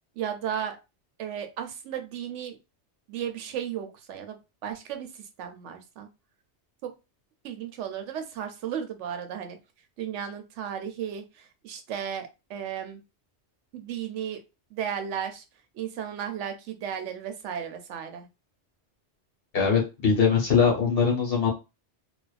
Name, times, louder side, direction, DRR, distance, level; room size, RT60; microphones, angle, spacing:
voice 1, 0.2-0.8 1.2-2.6 3.1-6.1 6.8-6.9 7.4-9.6 10.0-13.0 13.7-14.4 14.7-15.4 15.7-18.3, right 9 dB, 90° right, 7 dB, 0.9 m, -34 dB
voice 2, 19.5-21.5, left 6 dB, 55° left, -1 dB, 1.1 m, -22 dB
2.4 x 2.2 x 2.3 m, 0.27 s
omnidirectional pair, 1.2 m